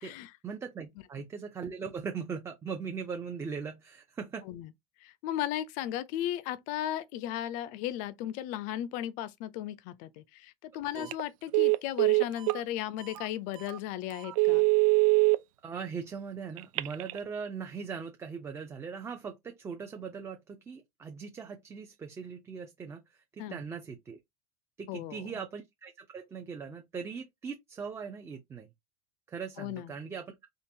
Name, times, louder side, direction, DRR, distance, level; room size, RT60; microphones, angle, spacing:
voice 1, 0.4-4.4 10.9-11.1 15.6-24.2 24.8-28.7 29.3-30.3, right 6 dB, 15° right, 0.5 m, -40 dB
voice 2, 5.0-14.7 23.4-23.6 24.9-25.2 29.6-29.9, left 12 dB, 45° left, 0.5 m, -36 dB
Telephone, 11.0-11.2 11.5-12.6 13.1-13.3 13.7-13.8 14.2-15.4 16.6-17.2, right 28 dB, 70° right, 0.5 m, -24 dB
3.7 x 2.4 x 2.7 m
supercardioid pair, 135°, 18 cm